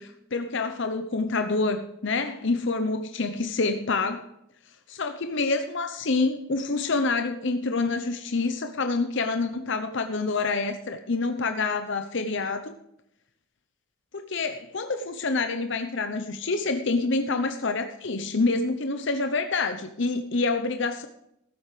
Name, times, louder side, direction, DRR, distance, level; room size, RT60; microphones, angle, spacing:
voice 1, 0.0-4.2 5.0-12.7 14.1-21.1, left 3 dB, 55° left, 7 dB, 0.8 m, -27 dB
14.5 x 8.0 x 5.0 m, 0.76 s
head